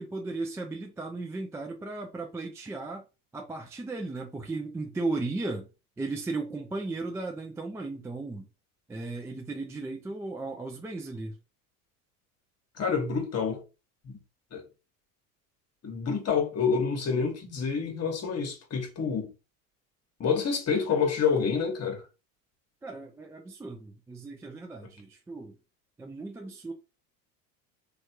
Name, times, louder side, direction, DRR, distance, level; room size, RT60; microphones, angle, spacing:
voice 1, 0.0-3.1 3.3-5.7 6.0-8.5 8.9-11.4 22.8-25.6 26.0-26.7, right 3 dB, 5° right, 0.3 m, -36 dB
voice 2, 12.8-13.6 14.0-14.2 14.5-14.6 15.8-19.3 20.2-22.0, left 6 dB, 35° left, 1.2 m, -28 dB
3.1 x 2.5 x 2.8 m
hypercardioid pair, 85°, 44 cm